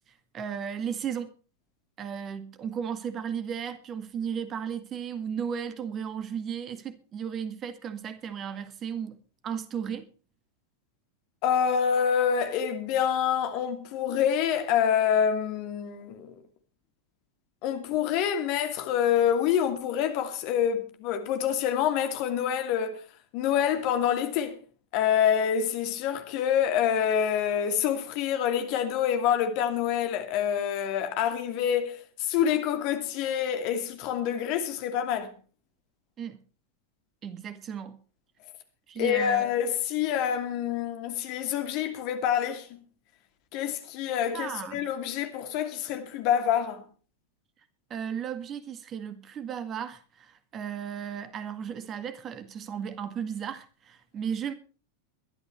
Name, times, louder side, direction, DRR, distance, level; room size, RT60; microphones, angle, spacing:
voice 1, 0.3-1.3 2.0-9.2 9.4-10.1 36.2-36.4 37.2-38.0 38.9-39.5 44.3-44.9 47.9-54.5, right 8 dB, 30° right, 1.9 m, -35 dB
voice 2, 11.4-16.3 17.6-23.0 23.3-24.6 24.9-35.3 39.0-42.8 43.5-46.8, left 9 dB, 45° left, 2.6 m, -27 dB
22.5 x 12.5 x 3.2 m
figure-of-eight pair, 90°, 0 cm